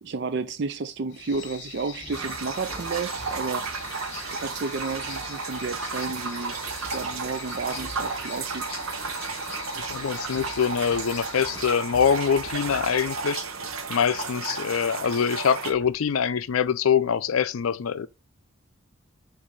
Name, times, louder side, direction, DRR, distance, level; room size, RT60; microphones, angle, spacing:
voice 1, 0.0-3.7 4.4-6.5 6.9-8.7, right 4 dB, 55° right, 0.5 m, -32 dB
sound 1, 1.1-11.7, left 7 dB, 55° left, 0.8 m, -43 dB
sound 2, 2.0-16.0, equal, 10° left, 1.5 m, -49 dB
sound 3, 2.1-15.7, right 4 dB, 85° right, 0.8 m, -33 dB
voice 2, 9.7-13.4 13.9-18.1, left 7 dB, 85° left, 0.4 m, -24 dB
7.1 x 2.6 x 5.2 m
head